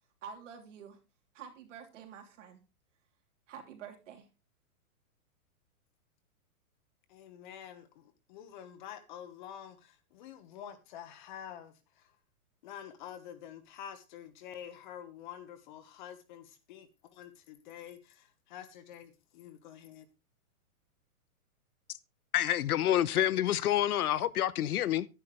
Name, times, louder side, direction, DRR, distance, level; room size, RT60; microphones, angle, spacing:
voice 1, 0.2-1.0 1.3-2.6 3.5-4.3, right 7 dB, 55° right, 3.1 m, -48 dB
voice 2, 7.1-12.2 12.6-20.1, left 9 dB, 35° left, 1.2 m, -48 dB
voice 3, 22.3-25.1, left 12 dB, 80° left, 0.9 m, -28 dB
11.0 x 10.5 x 3.2 m
hypercardioid pair, 170°, 44 cm